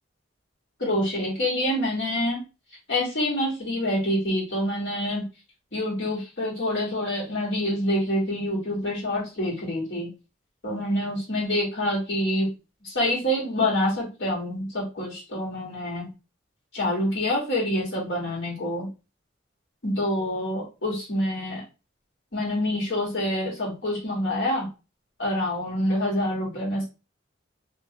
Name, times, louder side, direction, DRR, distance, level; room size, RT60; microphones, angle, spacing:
voice 1, 0.8-2.4 2.9-5.2 5.7-10.1 10.6-12.5 12.8-16.1 16.7-18.9 19.8-21.6 22.3-24.7 25.2-26.9, left 1 dB, 70° left, -3 dB, 1.6 m, -26 dB
2.7 x 2.5 x 2.8 m, 0.30 s
head